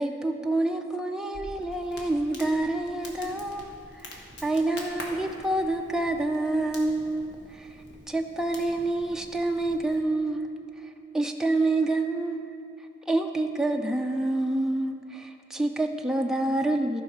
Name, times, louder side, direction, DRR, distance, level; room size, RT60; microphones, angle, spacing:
voice 1, 0.0-7.7 8.1-10.4 11.1-12.4 13.1-17.0, right 2 dB, 5° right, 3 dB, 0.3 m, -27 dB
Crackle, 1.3-10.0, left 1 dB, 60° left, 1.4 m, -46 dB
14.5 x 5.5 x 4.6 m, 2.6 s
head